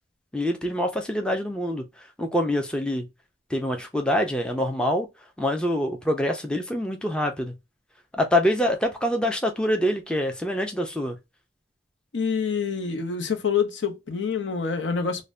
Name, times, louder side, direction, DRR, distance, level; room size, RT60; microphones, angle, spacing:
voice 1, 0.3-3.1 3.5-5.1 5.4-7.5 8.1-11.2, left 1 dB, 5° left, 0.4 m, -25 dB
voice 2, 12.1-15.2, left 6 dB, 85° left, 0.7 m, -26 dB
2.5 x 2.1 x 3.1 m
head